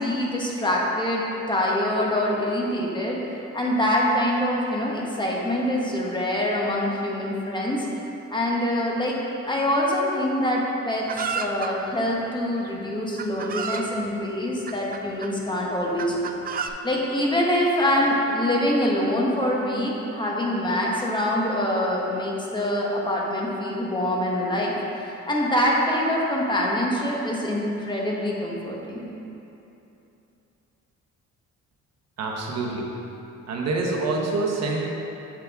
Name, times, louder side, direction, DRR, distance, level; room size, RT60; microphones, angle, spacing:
voice 1, 0.0-7.9 8.3-9.2 9.5-11.1 11.3-24.8 25.1-29.1, left 1 dB, 15° left, -3 dB, 1.2 m, -25 dB
Chicken rooster, 11.1-11.7 12.6-12.7 13.2-13.9 14.7-15.3 16.0-16.7, right 6 dB, 30° right, 0.4 m, -31 dB
voice 2, 32.2-32.9 33.5-34.8, right 3 dB, 60° right, -2 dB, 1.2 m, -26 dB
7.3 x 5.1 x 3.6 m, 2.9 s
cardioid pair, 90°, 30 cm